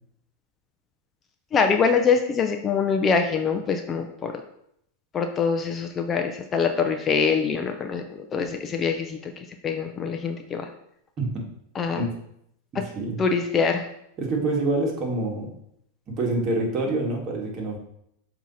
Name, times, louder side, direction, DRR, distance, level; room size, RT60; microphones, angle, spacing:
voice 1, 1.5-4.3 5.1-9.3 9.6-10.7 11.8-12.0 12.7-12.8 13.2-13.9, left 5 dB, 25° left, 5 dB, 0.6 m, -24 dB
voice 2, 12.7-13.2 14.2-15.5 16.1-17.8, right 2 dB, 35° right, 0 dB, 2.0 m, -26 dB
7.3 x 3.0 x 5.5 m, 0.74 s
hypercardioid pair, 125°, 0 cm